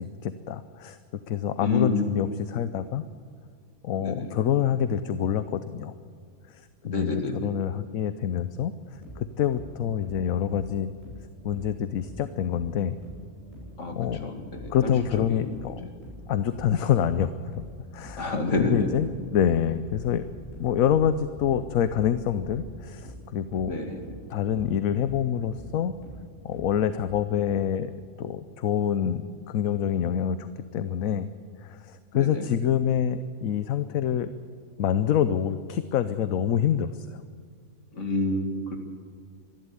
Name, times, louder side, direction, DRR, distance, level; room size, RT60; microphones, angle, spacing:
voice 1, 0.0-3.0 3.8-5.9 6.5-8.7 9.2-10.9 11.4-13.0 13.9-14.3 14.7-15.9 16.3-17.6 17.9-18.3 18.6-19.1 19.3-20.2 20.6-23.7 24.3-25.9 26.4-27.9 28.2-30.5 30.7-31.3 31.6-34.3 34.8-37.2, left 9 dB, 70° left, 12 dB, 1.1 m, -26 dB
voice 2, 1.6-2.1 4.0-4.3 6.8-7.5 13.8-13.9 14.2-14.9 15.3-15.5 18.2-18.9 23.7-24.0 32.1-32.5 37.9-38.8, left 2 dB, 55° left, 4 dB, 2.6 m, -28 dB
sound 1, 8.9-27.2, equal, 25° left, 7.2 m, -45 dB
24.5 x 12.0 x 9.7 m, 2.1 s
omnidirectional pair, 1.6 m